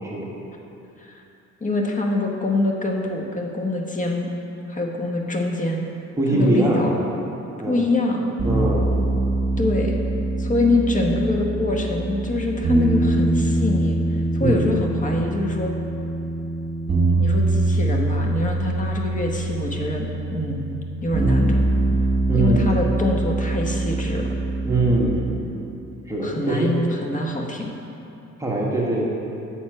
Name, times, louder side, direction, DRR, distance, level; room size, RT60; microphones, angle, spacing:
voice 1, 1.6-4.3 4.7-5.9 6.3-7.0 7.7-8.3 9.6-10.0 10.4-15.7 17.2-20.7 21.0-21.6 22.3-24.3 26.2-27.7, left 2 dB, 25° left, 1 dB, 0.9 m, -24 dB
voice 2, 6.2-7.0 7.6-7.8 8.4-8.9 14.4-14.7 22.3-22.7 24.6-25.2 26.1-26.7 28.4-29.0, right 2 dB, 10° right, -5 dB, 1.3 m, -22 dB
sound 1, 8.4-25.4, right 2 dB, 35° right, 1.7 m, -23 dB
6.6 x 4.3 x 6.3 m, 2.9 s
cardioid pair, 90°, 30 cm